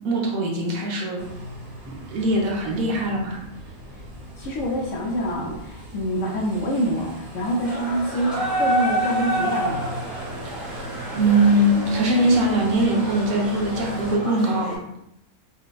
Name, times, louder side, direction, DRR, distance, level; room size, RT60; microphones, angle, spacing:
voice 1, 0.0-1.2 1.9-3.4 10.4-10.9 11.1-14.8, right 1 dB, 70° right, -1 dB, 1.2 m, -22 dB
sound 1, 1.2-14.2, equal, 45° right, 1.0 m, -39 dB
voice 2, 4.4-10.0, equal, 65° left, -2 dB, 0.9 m, -26 dB
sound 2, 7.6-14.7, right 1 dB, ahead, 0.6 m, -28 dB
4.9 x 2.1 x 2.2 m, 0.79 s
omnidirectional pair, 1.6 m